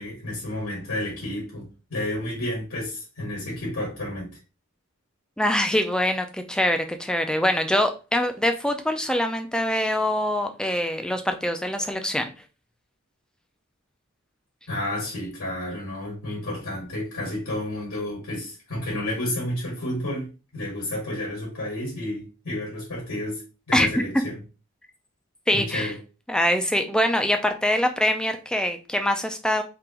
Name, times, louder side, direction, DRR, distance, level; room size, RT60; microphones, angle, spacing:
voice 1, 0.0-4.3 14.7-24.4 25.5-26.0, left 1 dB, 85° left, 1.9 m, -31 dB
voice 2, 5.4-12.3 23.7-24.0 25.5-25.9 26.3-29.6, left 1 dB, 5° left, 0.4 m, -24 dB
3.7 x 2.9 x 2.9 m
head